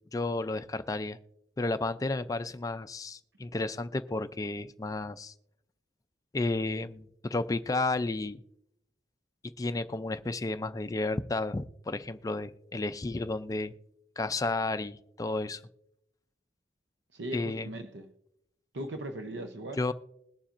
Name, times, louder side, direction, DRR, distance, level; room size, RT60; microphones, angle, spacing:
voice 1, 0.1-1.2 1.6-5.3 6.3-8.4 9.6-13.7 14.2-15.6 17.3-17.7 19.8-19.9, left 2 dB, 20° left, 0.4 m, -32 dB
voice 2, 17.1-18.1 18.7-19.8, right 1 dB, 85° right, 0.7 m, -38 dB
21.0 x 7.1 x 2.5 m
head